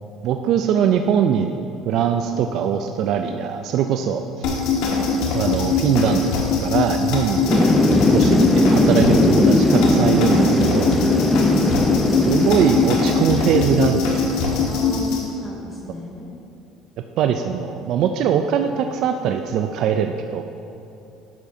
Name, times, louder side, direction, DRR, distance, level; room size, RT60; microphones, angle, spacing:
voice 1, 0.2-1.6 1.9-4.5 5.3-6.3 6.6-7.5 8.1-10.9 12.2-14.3 17.2-20.4, right 8 dB, 65° right, 6 dB, 0.3 m, -21 dB
sound 1, 4.4-15.2, left 5 dB, 75° left, 1.4 m, -22 dB
Thunder / Rain, 7.5-13.9, left 1 dB, 10° left, 0.6 m, -18 dB
voice 2, 14.7-16.3, right 1 dB, 25° left, -5 dB, 2.0 m, -34 dB
10.5 x 7.3 x 2.7 m, 2.6 s
supercardioid pair, 90°, 0 cm